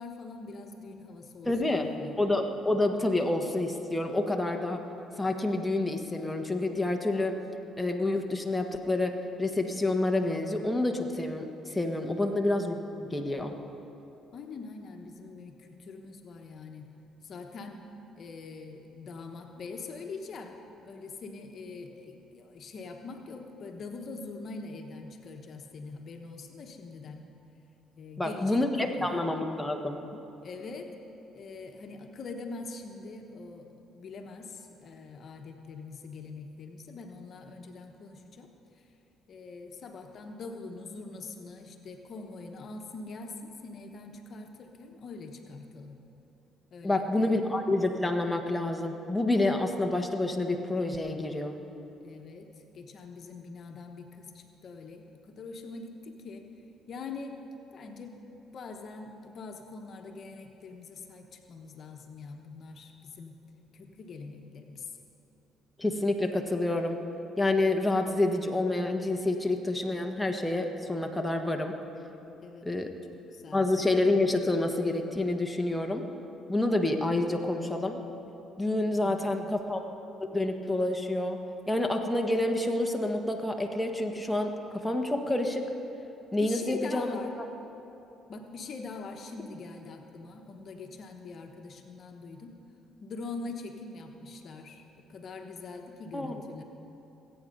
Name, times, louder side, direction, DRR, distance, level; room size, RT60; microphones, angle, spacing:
voice 1, 0.0-2.2 12.0-12.3 14.3-16.9 17.2-17.8 18.2-20.6 20.8-27.2 28.0-29.1 30.4-30.9 31.3-38.5 38.8-38.9 39.3-46.0 46.7-47.4 52.0-56.5 56.9-57.4 57.7-58.2 58.5-63.3 63.7-64.9 72.4-72.9 73.3-73.9 79.0-79.3 86.4-87.3 88.3-92.5 93.0-94.8 95.1-96.6, left 4 dB, 55° left, 4 dB, 1.1 m, -43 dB
voice 2, 1.4-1.9 2.2-4.8 5.2-7.3 7.8-9.1 9.4-12.8 13.1-13.5 28.2-30.0 46.8-51.6 65.8-67.0 67.4-71.7 72.6-72.9 73.5-76.0 76.5-78.0 78.6-79.9 80.3-81.4 81.7-85.7 86.3-87.2 96.1-96.4, left 2 dB, 5° left, 3 dB, 1.3 m, -28 dB
20.5 x 8.8 x 5.4 m, 2.9 s
supercardioid pair, 75°, 0 cm